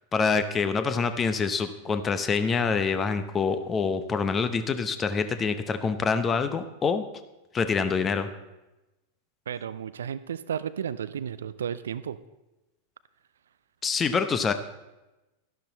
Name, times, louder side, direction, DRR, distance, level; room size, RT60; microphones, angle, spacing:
voice 1, 0.1-7.0 7.5-8.3 13.8-14.5, left 5 dB, 20° left, 10 dB, 0.8 m, -26 dB
voice 2, 9.5-12.2, right 8 dB, 65° right, 15 dB, 0.4 m, -33 dB
12.0 x 11.5 x 4.0 m, 1.0 s
figure-of-eight pair, 90°, 0 cm